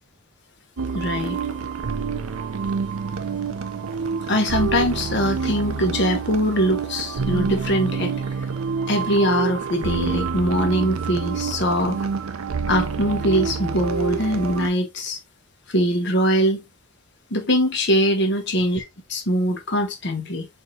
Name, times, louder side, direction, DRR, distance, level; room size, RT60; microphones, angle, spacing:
sound 1, 0.8-14.7, right 5 dB, 85° right, 0.6 m, -27 dB
voice 1, 0.9-1.4 4.3-8.1 8.9-12.0 12.7-15.2 15.7-16.6 17.3-18.8 19.1-20.5, equal, 55° left, 1.2 m, -22 dB
4.4 x 3.6 x 2.7 m
head